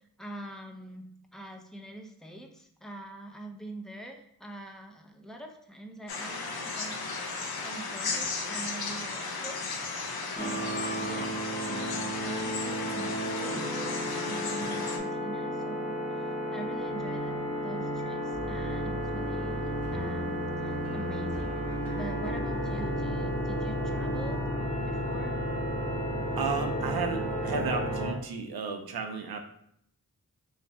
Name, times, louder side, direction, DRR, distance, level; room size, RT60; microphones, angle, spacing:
voice 1, 0.2-7.0 7.6-10.0 10.3-16.0 16.5-24.4 24.8-25.4, right 1 dB, ahead, 2 dB, 0.6 m, -44 dB
sound 1, 6.1-15.0, left 4 dB, 80° left, 0.6 m, -35 dB
sound 2, 10.4-28.1, equal, 20° left, 1.0 m, -32 dB
sound 3, 18.3-24.4, right 5 dB, 40° right, 0.9 m, -43 dB
voice 2, 26.4-29.4, right 4 dB, 85° right, 5 dB, 0.6 m, -33 dB
3.3 x 2.4 x 4.0 m, 0.70 s
cardioid pair, 50°, 36 cm